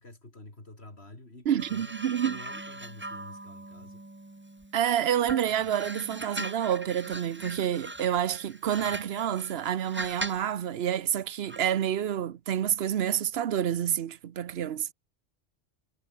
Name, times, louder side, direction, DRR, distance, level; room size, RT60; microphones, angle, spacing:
voice 1, 0.0-2.0 2.3-4.0, left 2 dB, 60° left, 4.9 m, -48 dB
voice 2, 1.4-2.4 4.7-14.9, right 10 dB, 60° right, 1.0 m, -28 dB
sound 1, 1.6-4.8 5.3-10.5 11.5-11.7, right 2 dB, 10° right, 0.8 m, -40 dB
omnidirectional pair, 1.2 m